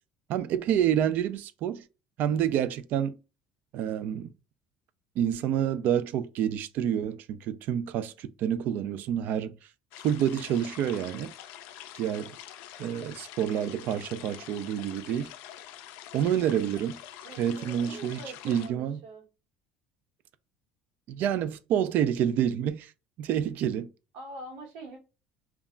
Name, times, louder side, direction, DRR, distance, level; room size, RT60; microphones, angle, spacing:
voice 1, 0.3-1.8 2.2-3.2 3.7-4.3 5.2-9.5 10.0-11.3 12.0-12.4 12.8-15.3 16.1-17.0 17.4-19.0 21.1-22.9 23.2-23.9, right 9 dB, 60° right, 0.3 m, -28 dB
sound 1, 9.9-18.7, left 11 dB, 75° left, 0.4 m, -46 dB
voice 2, 17.2-19.2 24.1-25.0, right 2 dB, 75° right, 1.0 m, -44 dB
2.3 x 2.0 x 3.6 m
supercardioid pair, 105°, 3 cm